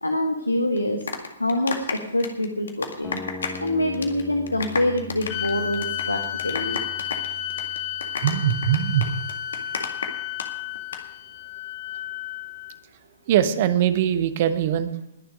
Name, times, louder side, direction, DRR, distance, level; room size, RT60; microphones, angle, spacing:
voice 1, 0.0-1.0 1.4-3.2 3.6-6.8, left 1 dB, 80° left, 4 dB, 1.5 m, -25 dB
sound 1, 0.8-3.7 3.9-4.2 4.5-10.5 10.8-11.0, left 5 dB, 60° left, 1.9 m, -31 dB
sound 2, 3.0-9.0, left 3 dB, 10° left, 1.6 m, -41 dB
sound 3, 5.3-12.8, left 11 dB, 35° left, 0.8 m, -32 dB
voice 2, 8.2-9.1 13.3-14.9, right 10 dB, 40° right, 11 dB, 1.1 m, -21 dB
20.5 x 7.4 x 5.2 m, 0.91 s
figure-of-eight pair, 120°, 0 cm